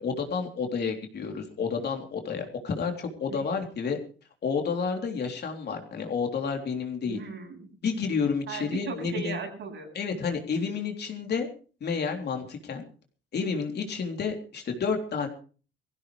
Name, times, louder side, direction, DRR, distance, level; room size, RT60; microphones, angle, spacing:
voice 1, 0.0-4.0 4.4-7.2 7.8-9.4 9.9-11.5 11.8-12.8 13.3-15.3, left 5 dB, 55° left, 3 dB, 3.5 m, -30 dB
voice 2, 7.1-7.7 8.5-9.9, right 5 dB, 70° right, 1 dB, 8.0 m, -37 dB
19.5 x 15.5 x 3.3 m, 0.38 s
cardioid pair, 90°, 20 cm